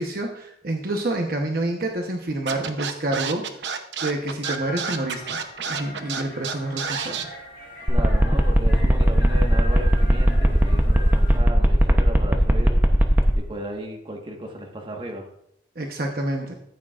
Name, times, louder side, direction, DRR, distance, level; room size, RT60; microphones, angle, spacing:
voice 1, 0.0-3.7 4.0-5.4 5.7-7.3 15.8-16.5, right 1 dB, 55° right, 2 dB, 1.0 m, -28 dB
Scratching (performance technique), 2.5-7.2, right 6 dB, 80° right, 0.8 m, -29 dB
sound 1, 4.2-11.4, left 1 dB, 70° left, 3.3 m, -40 dB
sound 2, 7.9-13.3, equal, 10° right, 0.8 m, -17 dB
voice 2, 7.9-15.3, equal, 30° right, 1 dB, 1.4 m, -35 dB
14.0 x 8.7 x 2.5 m, 0.74 s
head